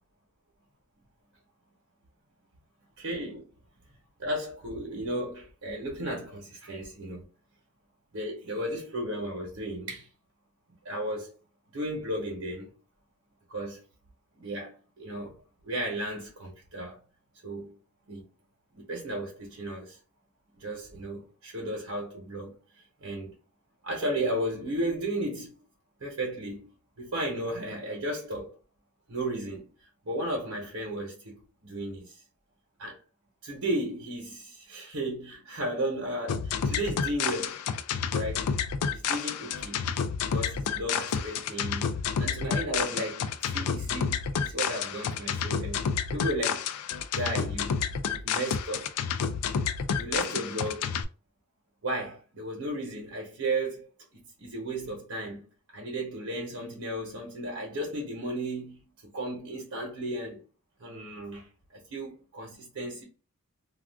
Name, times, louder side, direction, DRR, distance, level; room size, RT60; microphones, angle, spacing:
voice 1, 3.0-3.5 4.2-7.3 8.1-10.1 10.8-11.3 11.7-12.7 13.5-13.8 14.4-15.3 15.6-17.0 17.4-17.8 18.1-18.2 18.7-20.0 20.5-23.3 23.8-25.5 26.0-26.7 27.0-28.5 29.1-29.6 30.0-32.2 32.8-33.0 33.4-37.6 38.1-38.5 38.9-39.9 40.3-41.9 42.2-45.8 46.1-46.7 47.1-47.8 48.0-48.9 49.9-50.9 51.8-53.9 54.1-55.5 55.7-60.4 60.8-63.0, right 1 dB, 80° right, 0.9 m, -34 dB
sound 1, 36.3-51.0, left 6 dB, 85° left, 0.3 m, -30 dB
2.4 x 2.3 x 3.4 m
head